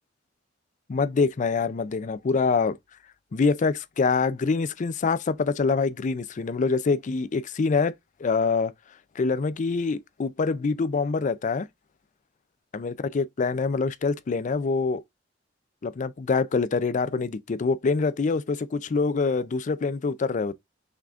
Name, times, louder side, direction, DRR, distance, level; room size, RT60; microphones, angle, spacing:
voice 1, 0.9-2.8 3.3-7.9 8.2-8.7 9.2-11.7 12.7-15.0 15.8-20.5, left 4 dB, 40° left, 0.4 m, -25 dB
5.8 x 3.7 x 2.5 m
head